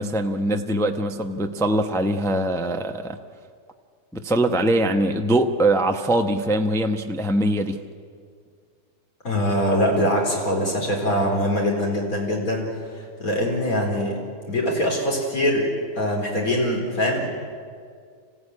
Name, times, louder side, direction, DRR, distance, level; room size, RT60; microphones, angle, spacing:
voice 1, 0.0-3.2 4.1-7.8, right 1 dB, 5° left, 5 dB, 0.7 m, -22 dB
voice 2, 9.2-12.6 12.9-14.2 14.5-17.3, equal, 55° left, 0 dB, 4.5 m, -23 dB
25.5 x 16.0 x 9.7 m, 2.1 s
omnidirectional pair, 1.8 m